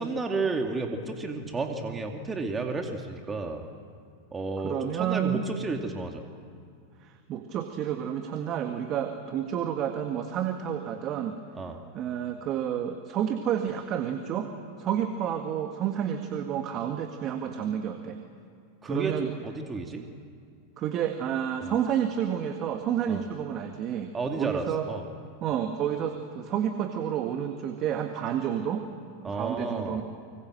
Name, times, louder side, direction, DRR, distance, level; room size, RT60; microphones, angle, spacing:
voice 1, 0.0-3.6 4.3-6.2 11.5-11.8 18.8-20.0 21.6-21.7 23.1-23.2 24.1-25.0 29.2-30.0, right 3 dB, 20° right, 4 dB, 2.5 m, -32 dB
voice 2, 4.6-5.4 7.0-11.4 11.9-14.5 14.8-18.2 18.9-19.3 20.8-24.9 25.4-28.9 29.2-30.0, right 9 dB, 40° right, 6 dB, 1.8 m, -30 dB
25.0 x 25.0 x 7.8 m, 2.3 s
hypercardioid pair, 95°, 0 cm